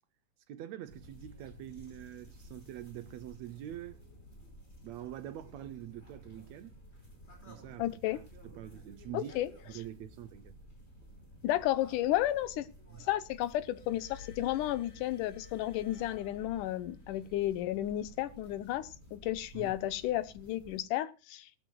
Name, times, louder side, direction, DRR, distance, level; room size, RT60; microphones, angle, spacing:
voice 1, 0.5-4.0 4.8-6.8 7.5-7.9 8.4-9.3 9.7-10.6 12.9-13.1 19.5-19.7, right 12 dB, 75° right, 1.7 m, -45 dB
sound 1, 0.9-20.8, equal, 20° left, 4.9 m, -54 dB
voice 2, 7.8-8.2 9.1-9.5 11.4-12.7 13.0-21.5, left 14 dB, 85° left, 2.4 m, -32 dB
Glass, 13.7-17.3 18.2-18.5, left 8 dB, 50° left, 0.8 m, -53 dB
19.0 x 14.0 x 2.3 m
omnidirectional pair, 3.6 m